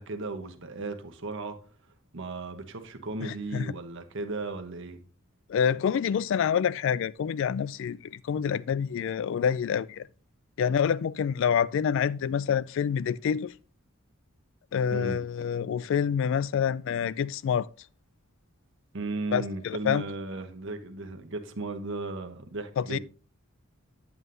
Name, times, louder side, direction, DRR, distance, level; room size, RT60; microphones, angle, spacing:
voice 1, 0.0-1.6 2.1-5.0 14.9-15.2 18.9-23.0, right 3 dB, 60° right, 1.0 m, -36 dB
voice 2, 3.2-3.7 5.5-10.1 10.6-13.5 14.7-17.7 19.3-20.0 22.8-23.0, left 7 dB, 65° left, 0.3 m, -27 dB
9.2 x 8.2 x 2.7 m
head